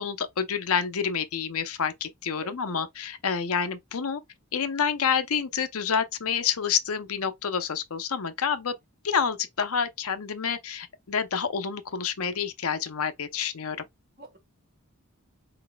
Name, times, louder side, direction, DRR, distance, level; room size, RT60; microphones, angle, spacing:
voice 1, 0.0-4.2 4.5-8.7 9.0-13.8, left 6 dB, 70° left, 0.6 m, -28 dB
voice 2, 2.4-2.9 14.2-14.4, right 3 dB, 45° right, 1.3 m, -48 dB
4.1 x 3.9 x 2.2 m
head